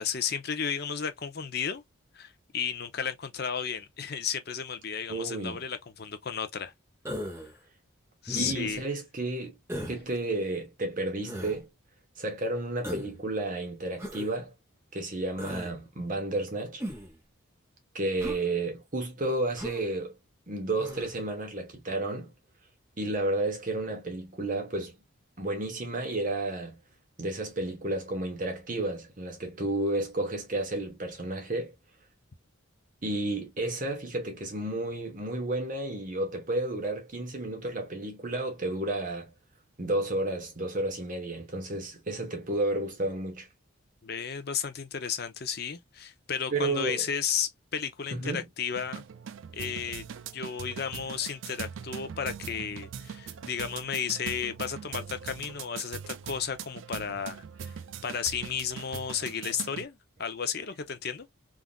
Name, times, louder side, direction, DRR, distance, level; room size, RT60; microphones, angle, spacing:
voice 1, 0.0-1.8 2.1-6.7 8.2-8.8 44.0-49.0 49.5-50.0 50.3-57.7 58.0-61.3, left 7 dB, 50° left, 0.6 m, -33 dB
voice 2, 5.1-5.6 8.4-9.6 9.9-11.7 12.2-14.5 14.9-16.8 17.9-20.1 20.5-22.3 23.0-24.9 25.4-26.8 27.2-31.7 33.0-39.3 39.8-43.5 46.5-47.1 48.1-48.5, right 2 dB, 40° right, 1.0 m, -32 dB
Human voice, 7.0-7.5 8.3-8.8 9.7-10.0 11.2-11.6 12.8-13.2 14.0-14.3 15.4-15.7 16.8-17.2 18.2-18.4 19.5-19.8 20.8-21.1, equal, 10° right, 1.0 m, -37 dB
sound 1, 48.7-59.9, right 7 dB, 70° right, 0.4 m, -41 dB
3.5 x 2.5 x 2.3 m
head